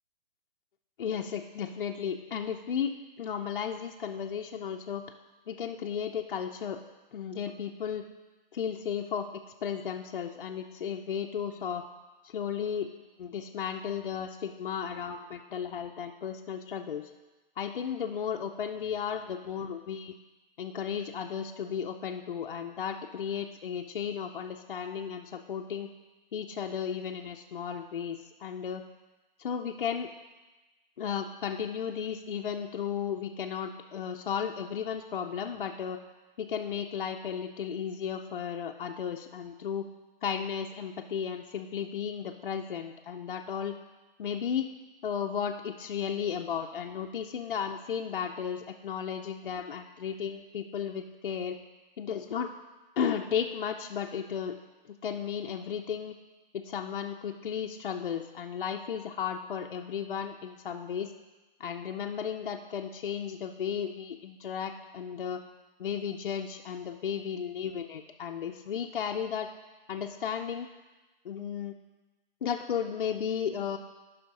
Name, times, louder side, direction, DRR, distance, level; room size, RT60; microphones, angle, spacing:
voice 1, 1.0-5.0 5.5-6.8 7.1-8.1 8.5-9.3 9.6-11.9 12.2-12.9 13.2-17.1 17.6-20.1 20.6-25.9 26.3-28.8 29.4-30.1 31.0-36.0 36.4-39.9 40.2-43.8 44.2-44.7 45.0-51.6 52.0-52.5 53.0-54.6 54.8-56.2 56.5-61.1 61.6-65.4 65.8-69.5 69.9-70.7 71.2-71.8 72.4-73.8, left 7 dB, 60° left, 3 dB, 0.6 m, -34 dB
10.5 x 5.7 x 4.0 m, 1.2 s
hypercardioid pair, 175°, 29 cm